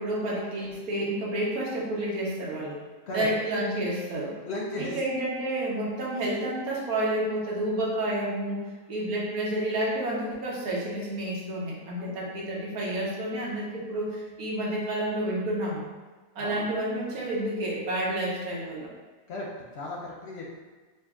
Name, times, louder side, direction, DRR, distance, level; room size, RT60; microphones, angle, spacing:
voice 1, 0.0-2.8 3.1-4.4 4.8-8.6 8.9-15.8 16.4-18.9, right 1 dB, 90° right, -4 dB, 1.4 m, -30 dB
voice 2, 4.4-5.0 12.0-12.1 16.4-16.6 19.3-20.5, left 2 dB, 60° left, -2 dB, 0.7 m, -35 dB
3.9 x 2.3 x 3.5 m, 1.3 s
omnidirectional pair, 1.5 m